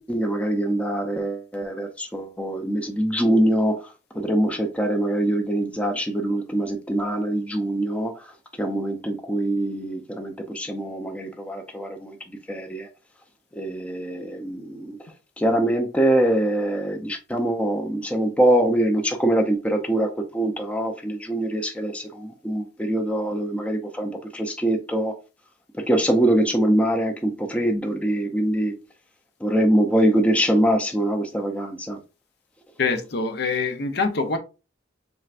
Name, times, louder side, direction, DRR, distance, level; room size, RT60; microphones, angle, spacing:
voice 1, 0.0-12.9 13.5-15.0 15.4-25.1 25.7-28.7 29.4-32.0, right 1 dB, 5° left, 0.5 m, -24 dB
voice 2, 32.8-34.4, left 4 dB, 60° left, 0.6 m, -24 dB
4.5 x 3.3 x 2.5 m
head